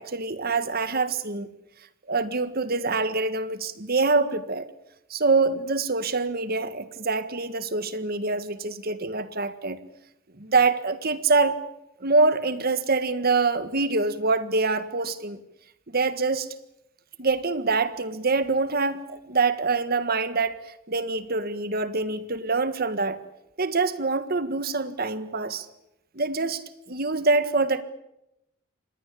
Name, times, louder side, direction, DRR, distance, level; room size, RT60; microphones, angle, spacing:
voice 1, 0.0-1.5 2.1-4.7 5.1-9.8 10.4-11.7 12.0-15.4 15.9-16.5 17.2-23.2 23.6-25.7 26.1-27.8, right 3 dB, 45° right, 13 dB, 1.6 m, -25 dB
26.5 x 20.0 x 8.5 m, 0.86 s
head